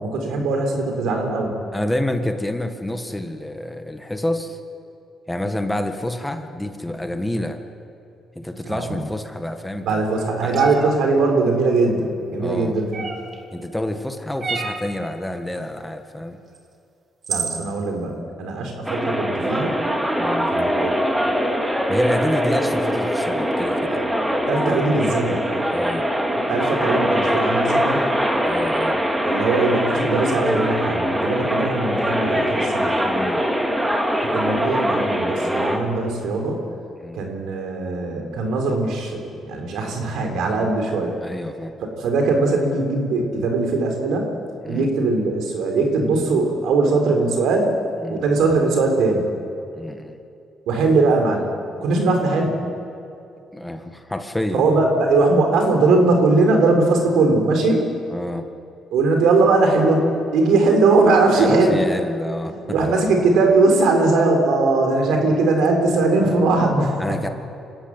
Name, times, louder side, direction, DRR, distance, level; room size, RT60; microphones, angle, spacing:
voice 1, 0.0-1.5 8.7-9.0 9.8-13.1 17.3-19.8 20.5-20.9 23.9-24.1 24.5-25.5 26.4-28.0 29.3-32.9 34.3-36.6 37.1-41.2 41.9-44.3 44.7-47.7 48.1-49.3 50.7-51.5 51.8-52.6 54.5-57.9 58.9-60.1 60.3-61.8 62.5-67.2, right 3 dB, 85° right, 3 dB, 4.0 m, -20 dB
voice 2, 1.7-4.6 5.3-7.6 8.4-10.0 10.4-11.0 12.4-12.8 13.5-16.4 20.2-20.5 21.9-24.0 25.7-26.0 28.5-29.0 33.0-33.4 37.0-37.2 41.2-41.7 44.6-44.9 48.0-48.2 49.7-50.2 53.5-54.8 58.1-58.5 61.3-62.6 67.0-67.3, left 1 dB, 10° left, 6 dB, 1.8 m, -28 dB
sound 1, 10.5-10.9 12.9-13.4 14.4-14.9 16.5-16.6 17.2-17.7, right 4 dB, 50° right, 3.0 m, -27 dB
sound 2, 18.9-35.8, equal, 10° right, 2.7 m, -22 dB
26.0 x 13.5 x 9.1 m, 2.6 s
cardioid pair, 90°, 0 cm